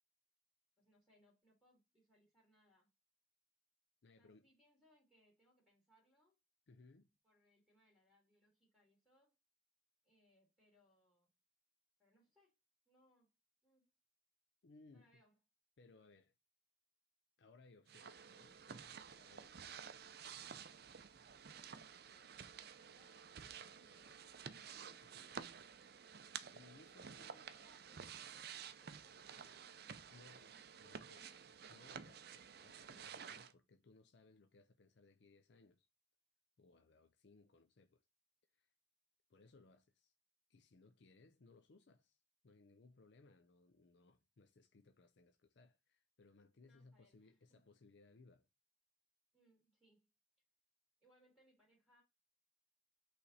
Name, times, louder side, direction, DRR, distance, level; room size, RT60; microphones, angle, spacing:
voice 1, 0.8-2.9 4.2-6.4 7.2-9.3 10.0-11.3 12.0-12.5 12.9-13.3 13.6-13.9 14.9-15.4 21.4-24.4 27.1-31.4 46.6-47.6 49.3-50.1 51.0-52.0, equal, 5° left, 2.7 m, -74 dB
voice 2, 4.0-4.5 6.7-7.1 14.6-15.2 15.8-16.3 17.4-19.8 25.0-25.4 26.3-27.4 30.1-30.5 30.8-31.3 31.7-35.9 36.6-38.0 38.5-38.7 39.3-40.1 40.5-42.2 42.4-48.5, left 3 dB, 60° left, 0.5 m, -66 dB
sound 1, 17.9-33.5, right 7 dB, 50° right, 0.6 m, -53 dB
8.4 x 3.4 x 4.1 m
head